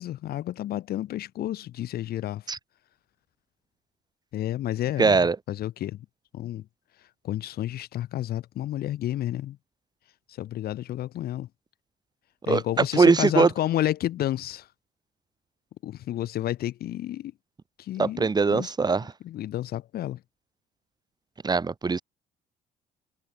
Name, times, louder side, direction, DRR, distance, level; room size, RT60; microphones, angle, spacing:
voice 1, 0.0-2.4 4.3-5.2 5.5-6.0 6.3-6.6 7.2-9.6 10.4-11.5 12.5-14.7 15.8-17.3 17.8-18.7 19.2-20.2, left 13 dB, 65° left, 2.9 m, -30 dB
voice 2, 5.0-5.4 12.5-13.5 18.0-19.1 21.4-22.0, right 4 dB, 25° right, 2.7 m, -21 dB
cardioid pair, 110°, 17 cm